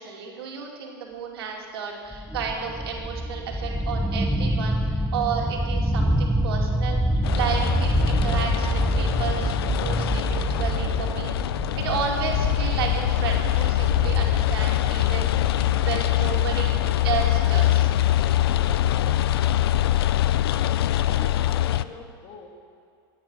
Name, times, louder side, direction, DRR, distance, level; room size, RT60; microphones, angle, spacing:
voice 1, 0.0-11.3 11.8-16.8 17.0-17.9, right 6 dB, 85° right, 0 dB, 2.5 m, -32 dB
sound 1, 2.1-20.0, equal, ahead, 0.6 m, -27 dB
sound 2, 7.2-21.8, left 14 dB, 85° left, 0.5 m, -24 dB
voice 2, 20.7-22.5, left 4 dB, 45° left, 2 dB, 2.5 m, -44 dB
16.5 x 9.8 x 6.3 m, 2.3 s
supercardioid pair, 130°, 13 cm